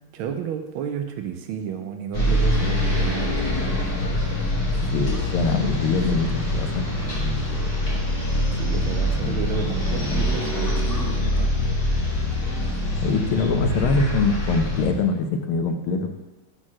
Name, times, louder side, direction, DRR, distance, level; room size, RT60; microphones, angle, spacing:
voice 1, 0.1-4.0 8.6-11.5, right 7 dB, 80° right, 6 dB, 1.5 m, -32 dB
sound 1, 2.1-14.8, left 1 dB, 30° left, 1.8 m, -24 dB
voice 2, 4.9-6.8 13.0-16.1, left 4 dB, 90° left, 6 dB, 1.5 m, -23 dB
5.0 x 4.4 x 6.0 m, 1.1 s
omnidirectional pair, 2.3 m